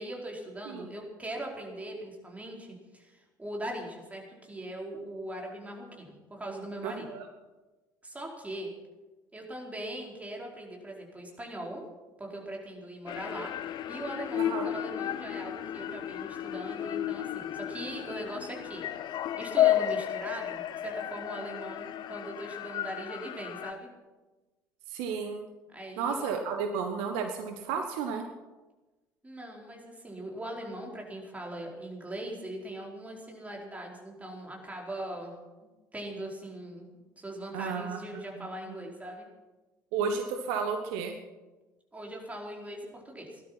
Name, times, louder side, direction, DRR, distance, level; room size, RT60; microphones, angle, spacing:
voice 1, 0.0-7.1 8.0-8.7 9.3-11.8 12.2-13.5 13.9-18.9 19.4-23.9 25.7-26.3 29.2-35.3 35.6-36.9 37.2-39.3 41.9-43.4, right 1 dB, 15° right, -1 dB, 4.5 m, -40 dB
voice 2, 6.8-7.3 14.4-14.7 24.9-25.4 26.0-28.2 37.5-38.5 39.9-41.1, right 6 dB, 60° right, 5 dB, 1.3 m, -33 dB
sound 1, 13.1-23.7, left 12 dB, 45° left, 0.8 m, -32 dB
17.5 x 12.0 x 6.0 m, 1.2 s
figure-of-eight pair, 60°, 10 cm